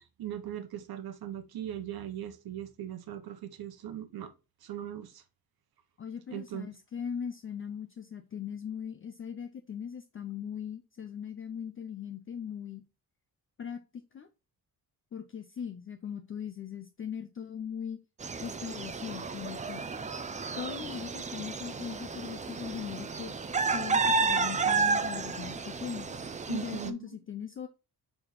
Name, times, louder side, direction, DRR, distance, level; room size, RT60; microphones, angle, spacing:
voice 1, 0.0-4.3 4.6-5.2 6.3-6.7 26.5-27.2, right 11 dB, 75° right, 1.1 m, -39 dB
voice 2, 6.0-12.8 13.6-14.3 15.1-18.0 18.4-19.8 20.6-23.4 23.7-26.1 26.5-27.7, left 8 dB, 35° left, 0.5 m, -39 dB
sound 1, 18.2-26.9, right 4 dB, 20° right, 0.4 m, -32 dB
7.0 x 3.6 x 4.0 m
wide cardioid pair, 165°, 37 cm